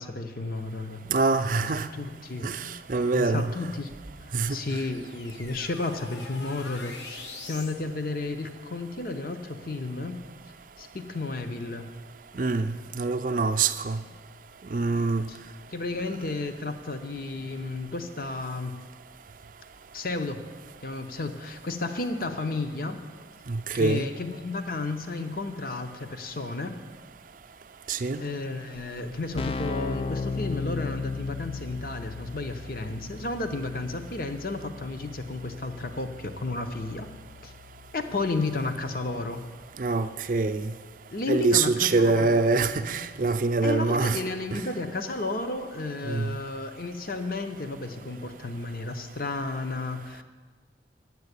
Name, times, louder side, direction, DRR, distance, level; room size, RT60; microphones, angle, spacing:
voice 1, 0.0-1.0 1.6-2.5 3.1-3.9 4.5-10.2 10.8-11.9 15.3-15.4 15.7-18.7 19.9-20.4 20.8-23.0 23.7-26.7 28.2-37.1 37.4-37.5 37.9-39.4 41.1-42.4 43.6-50.2, left 3 dB, 50° left, 0.7 m, -32 dB
voice 2, 1.1-1.9 2.4-3.5 4.3-4.6 12.3-14.0 14.7-15.3 23.5-24.1 27.9-28.2 39.8-40.7 41.3-44.2 44.5-44.6 46.0-46.3, right 3 dB, 45° right, 0.5 m, -25 dB
sound 1, 3.9-7.8, left 3 dB, 80° left, 1.2 m, -44 dB
Keyboard (musical), 29.1-39.7, left 4 dB, 30° left, 0.3 m, -37 dB
9.5 x 7.8 x 8.2 m
head